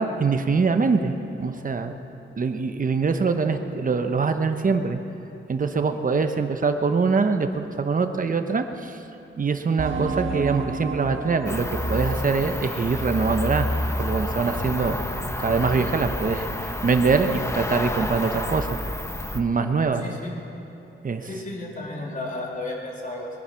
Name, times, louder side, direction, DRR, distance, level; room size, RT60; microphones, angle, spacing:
voice 1, 0.0-1.9 2.4-5.0 5.5-8.9 9.4-13.7 14.0-15.0 15.4-16.5 16.8-18.7 19.3-20.0 21.0-21.3, right 4 dB, 40° right, 7 dB, 1.0 m, -23 dB
sound 1, 9.8-14.1 14.4-14.5 15.0-15.1, right 4 dB, 75° right, 1.5 m, -33 dB
Cricket, 11.5-19.4, left 1 dB, 15° left, 0.9 m, -29 dB
voice 2, 19.9-20.4 21.2-23.3, left 2 dB, 40° left, -2 dB, 3.2 m, -33 dB
22.5 x 11.0 x 5.8 m, 2.9 s
wide cardioid pair, 100°, 21 cm